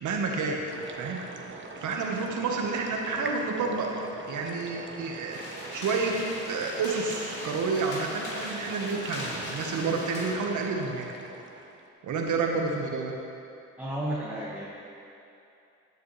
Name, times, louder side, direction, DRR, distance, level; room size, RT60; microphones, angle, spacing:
voice 1, 0.0-0.6 0.9-1.2 1.8-3.9 4.3-6.2 6.5-11.1 12.0-13.1, right 4 dB, 70° right, 1 dB, 1.5 m, -30 dB
mountain glacierstream extreme closeup, 0.7-11.9, right 3 dB, 40° right, 1.1 m, -42 dB
sound 1, 5.3-10.3, left 1 dB, 70° left, 2.5 m, -39 dB
voice 2, 13.8-14.6, right 1 dB, 5° right, -7 dB, 1.8 m, -32 dB
13.5 x 9.3 x 3.4 m, 2.7 s
supercardioid pair, 60°, 31 cm